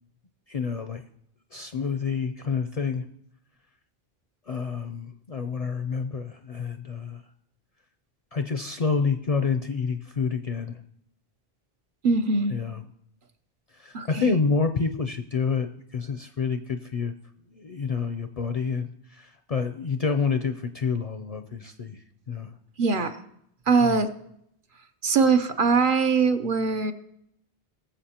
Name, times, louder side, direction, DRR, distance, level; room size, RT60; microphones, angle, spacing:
voice 1, 0.5-1.0 1.5-3.0 4.5-7.2 8.3-10.8 12.5-12.8 13.8-17.1 17.5-22.0 22.3-22.5 23.8-24.0, left 5 dB, 50° left, 7 dB, 0.5 m, -28 dB
voice 2, 12.0-12.6 13.9-14.4 22.8-23.2 23.7-24.1 25.0-26.9, right 4 dB, 60° right, 7 dB, 0.9 m, -22 dB
21.0 x 7.2 x 2.9 m, 0.74 s
omnidirectional pair, 1.0 m